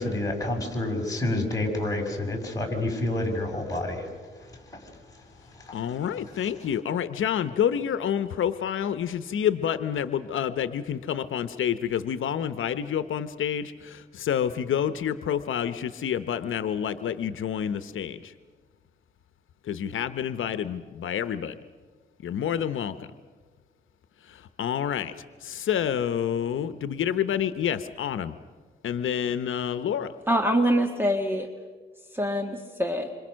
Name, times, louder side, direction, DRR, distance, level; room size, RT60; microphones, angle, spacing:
voice 1, 0.0-4.1 4.7-4.8 5.6-5.8, left 1 dB, 15° left, 0 dB, 6.0 m, -28 dB
voice 2, 5.7-18.3 19.7-21.6 22.2-23.0 24.3-25.1 25.4-28.3 28.8-30.1, left 9 dB, 80° left, 11 dB, 0.9 m, -28 dB
voice 3, 30.3-31.5 32.1-33.1, equal, 10° right, 4 dB, 1.7 m, -24 dB
27.0 x 26.5 x 6.4 m, 1.5 s
cardioid pair, 100°, 20 cm